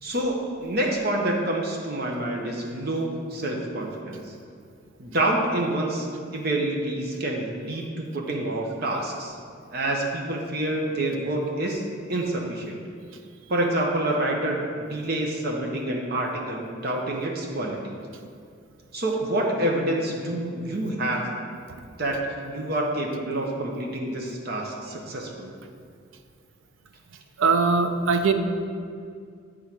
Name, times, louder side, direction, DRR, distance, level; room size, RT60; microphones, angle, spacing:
voice 1, 0.0-4.2 5.0-6.1 6.3-9.3 9.7-11.8 12.1-12.8 13.5-17.9 18.9-21.2 22.0-22.2 22.4-25.5, right 1 dB, 50° right, 0 dB, 0.8 m, -27 dB
voice 2, 27.4-28.3, right 4 dB, 80° right, 7 dB, 0.6 m, -21 dB
8.2 x 3.7 x 5.9 m, 2.3 s
head